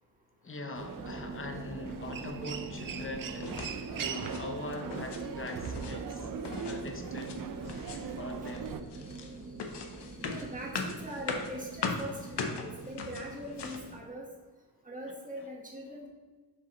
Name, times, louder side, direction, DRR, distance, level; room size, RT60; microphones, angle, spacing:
voice 1, 0.4-6.3 6.7-8.8 15.4-15.5, left 2 dB, 30° left, 0.7 m, -42 dB
Human voice, 0.7-8.8, right 6 dB, 55° right, 0.5 m, -40 dB
sound 1, 0.9-13.9, right 3 dB, 40° right, 1.1 m, -45 dB
sound 2, 3.4-3.8 4.1-4.5 4.8-5.2 5.5-6.0 6.4-7.4 7.7-8.2 8.5-13.9, left 4 dB, 85° left, 0.8 m, -39 dB
voice 2, 10.3-14.3 14.8-16.1, right 1 dB, 20° right, 1.4 m, -41 dB
7.3 x 4.8 x 3.1 m
wide cardioid pair, 105°, 40 cm